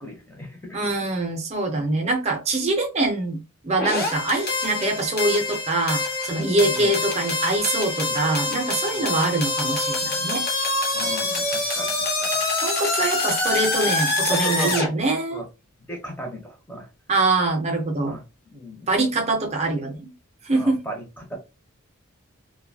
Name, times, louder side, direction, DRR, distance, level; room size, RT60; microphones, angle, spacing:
voice 1, 0.0-0.9 6.3-7.0 8.0-8.1 8.9-9.1 10.9-12.3 14.3-14.7 15.3-15.5 15.9-16.9 18.0-18.9 20.5-21.4, equal, 10° left, 0.7 m, -36 dB
voice 2, 0.7-10.4 12.6-15.4 17.1-18.2 18.9-20.1 20.4-20.8, right 2 dB, 30° right, 0.6 m, -24 dB
sound 1, 3.8-14.9, left 2 dB, 45° left, 0.8 m, -25 dB
2.7 x 2.2 x 2.7 m
head